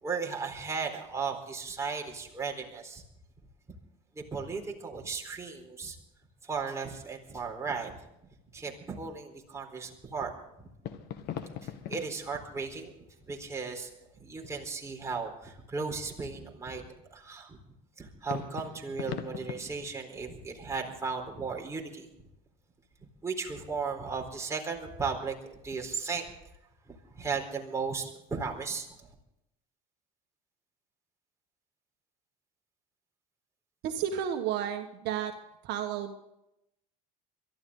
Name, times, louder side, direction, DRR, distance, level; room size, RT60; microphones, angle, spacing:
voice 1, 0.0-3.0 4.2-6.0 6.4-8.0 8.5-10.3 11.6-12.9 13.3-13.9 14.2-17.6 18.0-22.1 23.2-25.3 25.6-26.2 27.2-28.9, right 5 dB, 15° right, 0 dB, 4.1 m, -36 dB
sound 1, 10.8-14.2 18.3-21.6, left 10 dB, 60° left, 1.6 m, -42 dB
voice 2, 33.8-35.3 35.6-36.1, right 9 dB, 65° right, 4 dB, 1.5 m, -32 dB
23.0 x 13.5 x 3.9 m, 0.86 s
supercardioid pair, 110°, 19 cm